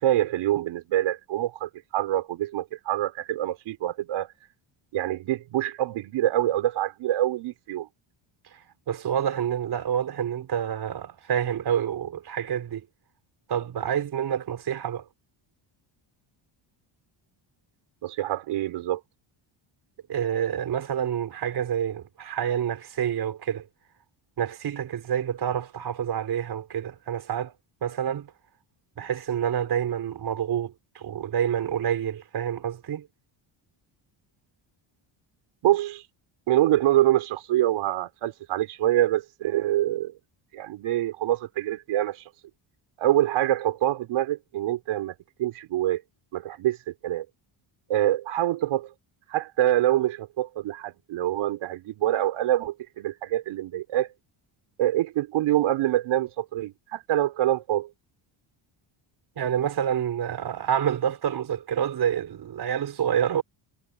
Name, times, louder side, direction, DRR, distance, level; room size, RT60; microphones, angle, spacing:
voice 1, 0.0-4.3 4.9-7.9 18.0-19.0 35.6-36.0 36.5-40.1 40.5-42.2 43.0-45.1 45.4-46.0 46.3-47.3 47.9-48.9 49.3-54.1 54.8-57.9, right 13 dB, 75° right, 4.7 m, -25 dB
voice 2, 8.9-12.8 13.5-15.0 20.1-23.7 24.4-27.5 27.8-28.3 29.0-33.1 59.4-63.4, right 9 dB, 50° right, 4.8 m, -28 dB
cardioid pair, 150°, 49 cm